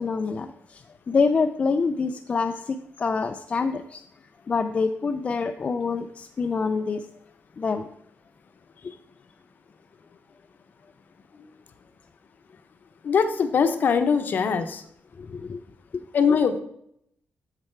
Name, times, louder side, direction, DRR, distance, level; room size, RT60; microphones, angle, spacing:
voice 1, 0.0-4.0 4.5-7.1 7.6-7.9 8.8-8.9 11.3-11.5 15.2-15.6 15.9-16.0, left 4 dB, 30° left, 7 dB, 0.3 m, -26 dB
voice 2, 13.0-14.8 16.1-16.6, left 6 dB, 45° left, 9 dB, 0.8 m, -22 dB
7.9 x 6.8 x 4.4 m, 0.72 s
wide cardioid pair, 175°, 4 cm